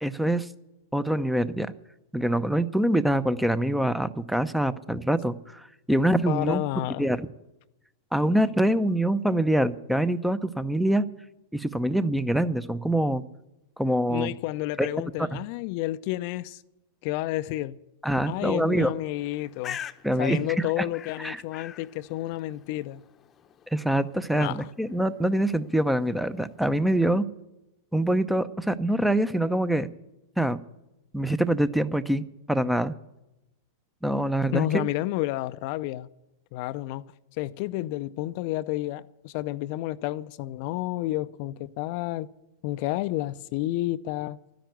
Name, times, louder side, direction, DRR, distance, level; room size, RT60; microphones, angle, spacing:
voice 1, 0.0-0.5 0.9-1.7 2.1-6.6 7.0-7.3 8.1-11.0 11.5-13.2 13.8-14.3 14.8-14.9 15.2-15.4 18.0-18.9 20.0-20.4 20.8-20.9 21.2-21.4 23.7-27.2 27.9-29.9 30.4-30.6 31.1-32.9 34.0-34.9, right 1 dB, ahead, 0.7 m, -25 dB
voice 2, 6.3-7.1 14.1-16.6 17.0-17.8 18.3-19.8 20.2-23.0 24.3-24.7 34.5-36.1 36.5-42.3 42.6-44.4, left 16 dB, 50° left, 0.5 m, -30 dB
Bird, 19.2-26.8, left 9 dB, 25° left, 0.8 m, -46 dB
12.5 x 10.0 x 9.3 m
figure-of-eight pair, 100°, 0 cm